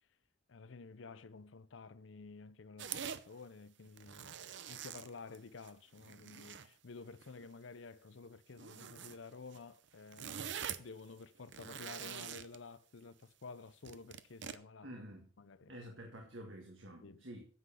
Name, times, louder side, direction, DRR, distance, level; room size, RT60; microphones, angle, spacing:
voice 1, 0.5-14.9 15.4-15.7 17.0-17.2, left 4 dB, 85° left, 0.7 m, -52 dB
sound 1, 2.8-3.2 3.8-5.7 6.0-6.7 7.2-7.4 8.5-9.2 9.5-9.6 9.9-10.9 11.4-12.6 13.8-14.6, right 8 dB, 65° right, 0.7 m, -45 dB
voice 2, 14.8-15.3 15.7-17.5, right 1 dB, 90° right, 1.9 m, -49 dB
9.7 x 7.7 x 5.6 m
head